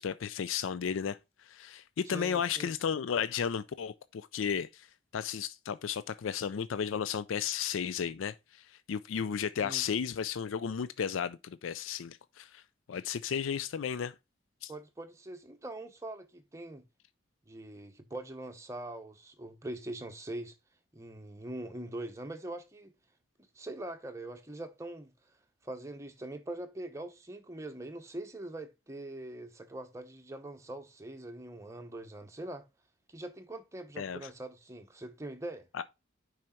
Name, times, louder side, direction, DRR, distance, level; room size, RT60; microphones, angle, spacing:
voice 1, 0.0-4.9 5.1-12.6 12.9-14.1 14.6-14.7 34.0-34.3 35.7-35.8, left 7 dB, 80° left, 0.4 m, -34 dB
voice 2, 2.1-2.7 9.6-9.8 14.7-16.8 17.5-20.5 20.9-22.9 23.5-25.1 25.6-32.7 33.1-35.7, right 1 dB, 15° right, 0.9 m, -43 dB
6.2 x 4.9 x 4.4 m
head